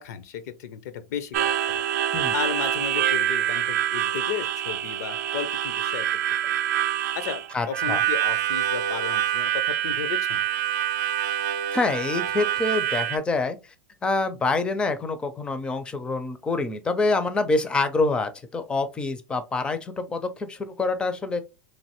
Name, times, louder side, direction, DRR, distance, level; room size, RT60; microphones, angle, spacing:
voice 1, 0.0-1.8 2.3-6.1 6.4-6.5 7.1-10.4, left 8 dB, 65° left, 0.5 m, -34 dB
Harmonica, 1.3-13.2, right 11 dB, 70° right, 0.4 m, -26 dB
voice 2, 7.5-8.0 11.7-13.6 14.0-21.4, left 3 dB, 10° left, 0.4 m, -26 dB
3.1 x 2.5 x 2.9 m
supercardioid pair, 160°, 9 cm